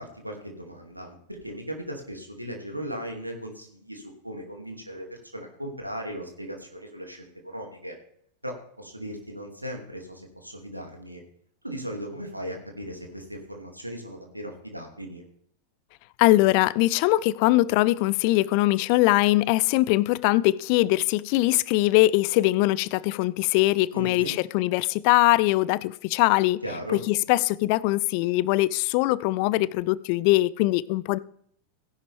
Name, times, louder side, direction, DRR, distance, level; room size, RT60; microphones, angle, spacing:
voice 1, 0.0-7.9 8.4-11.2 11.6-15.2 23.9-24.4 26.6-27.0, equal, 85° right, 2.6 m, -37 dB
voice 2, 16.2-26.6 27.1-31.2, left 18 dB, 45° left, 0.4 m, -22 dB
17.0 x 11.0 x 3.5 m
figure-of-eight pair, 90°, 0 cm